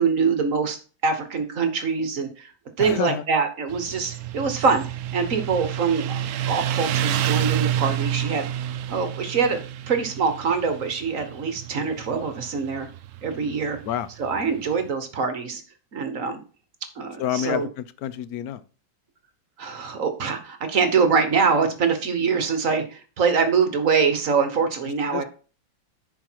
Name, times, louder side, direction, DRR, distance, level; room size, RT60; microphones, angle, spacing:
voice 1, 0.0-2.5 2.8-4.8 5.1-6.1 6.5-8.5 8.9-9.6 9.9-12.9 13.2-13.8 14.2-15.6 15.9-16.4 17.0-17.7 19.6-25.2, right 5 dB, 50° right, 7 dB, 1.3 m, -24 dB
voice 2, 2.8-3.3 13.8-14.1 17.2-18.6 25.1-25.2, left 11 dB, 70° left, 14 dB, 0.9 m, -28 dB
Motorcycle, 3.7-14.8, right 10 dB, 70° right, 0.9 m, -29 dB
10.0 x 4.8 x 4.5 m, 0.37 s
omnidirectional pair, 2.0 m